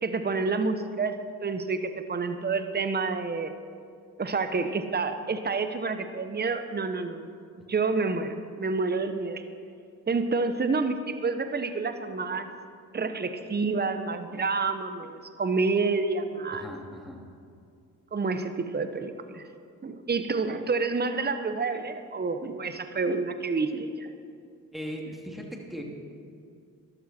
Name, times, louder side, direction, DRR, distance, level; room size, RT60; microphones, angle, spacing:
voice 1, 0.0-3.5 4.2-7.3 7.7-9.4 10.1-12.5 12.9-16.7 18.1-19.4 19.8-24.1, right 4 dB, 25° right, 9 dB, 1.0 m, -28 dB
voice 2, 16.5-17.2 24.7-25.8, equal, ahead, 0 dB, 2.7 m, -38 dB
13.5 x 12.0 x 4.4 m, 2.4 s
supercardioid pair, 55°, 38 cm